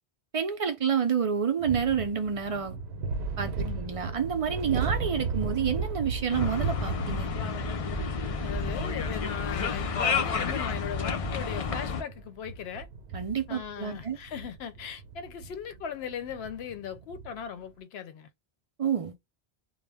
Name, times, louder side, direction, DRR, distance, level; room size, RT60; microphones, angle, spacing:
voice 1, 0.3-2.8 3.4-7.3 13.1-14.2 18.8-19.1, right 7 dB, 50° right, 0.4 m, -29 dB
sound 1, 1.6-17.4, right 4 dB, 80° right, 0.8 m, -36 dB
sound 2, 6.3-12.0, left 5 dB, 55° left, 0.4 m, -31 dB
voice 2, 8.3-12.9 13.5-18.3, left 7 dB, 75° left, 0.8 m, -38 dB
2.3 x 2.0 x 3.3 m
omnidirectional pair, 1.1 m